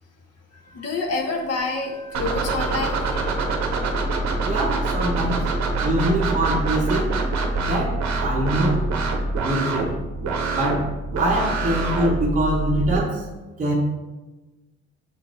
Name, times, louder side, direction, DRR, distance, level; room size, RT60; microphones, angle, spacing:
voice 1, 0.5-3.3, left 3 dB, 55° left, 1 dB, 0.8 m, -28 dB
sound 1, 2.1-13.0, right 3 dB, 65° right, 0.8 m, -25 dB
voice 2, 4.4-5.5 5.8-7.2 7.7-8.9 9.4-9.9 10.5-13.3 13.6-13.7, right 1 dB, 25° right, -3 dB, 0.7 m, -24 dB
6.1 x 2.6 x 3.0 m, 1.1 s
cardioid pair, 90°, 30 cm